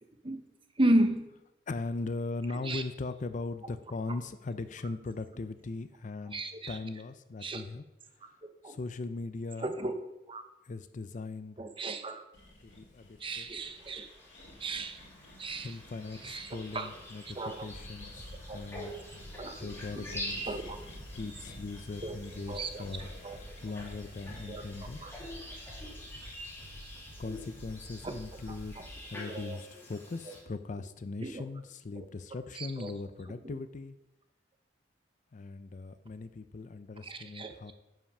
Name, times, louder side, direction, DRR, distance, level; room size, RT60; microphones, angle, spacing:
voice 1, 0.8-1.2 2.7-2.8 6.3-6.8 7.4-7.6 8.6-8.8 9.6-9.9 10.3-10.4 11.6-12.2 13.2-14.1 14.6-15.0 15.4-15.7 16.2-16.9 17.4-17.7 18.5-18.6 19.4-19.7 20.5-20.8 22.0-22.2 22.5-22.8 23.2-23.4 24.5-24.6 25.0-25.1 28.0-28.1 29.3-29.6 31.2-31.4 32.0-32.1 32.6-32.9 37.0-37.5, right 1 dB, 30° right, 0.8 m, -33 dB
voice 2, 1.7-6.4 6.7-7.8 8.2-8.3 8.6-9.8 10.6-11.6 12.6-13.5 15.6-19.0 19.6-20.4 21.1-25.0 27.2-28.8 29.1-34.0 35.3-37.7, left 3 dB, 45° left, 0.5 m, -39 dB
sound 1, 12.3-25.0, left 1 dB, 75° left, 2.2 m, -54 dB
sound 2, 13.6-30.4, equal, 15° left, 2.7 m, -46 dB
sound 3, 17.7-29.0, equal, 75° right, 2.0 m, -49 dB
9.9 x 5.8 x 5.4 m
head